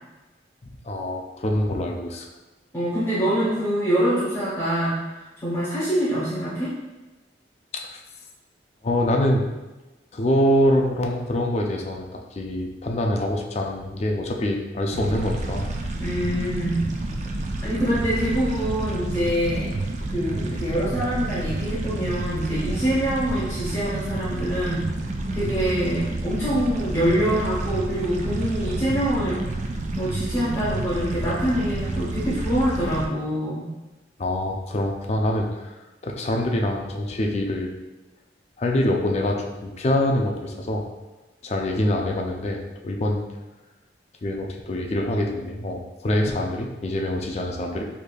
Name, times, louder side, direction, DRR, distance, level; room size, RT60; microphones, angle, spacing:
voice 1, 0.6-2.3 7.7-8.0 8.8-9.4 10.1-15.7 17.5-17.6 34.2-35.7 36.0-37.8 38.6-40.9 41.4-43.2 44.2-47.8, left 1 dB, 40° left, 1 dB, 0.4 m, -25 dB
voice 2, 2.7-6.7 16.0-16.9 17.6-19.8 20.1-24.9 25.3-29.4 29.9-33.7, equal, 15° left, -10 dB, 1.0 m, -25 dB
sound 1, 14.9-33.1, right 2 dB, 40° right, 0.3 m, -29 dB
4.8 x 2.7 x 2.3 m, 1.1 s
head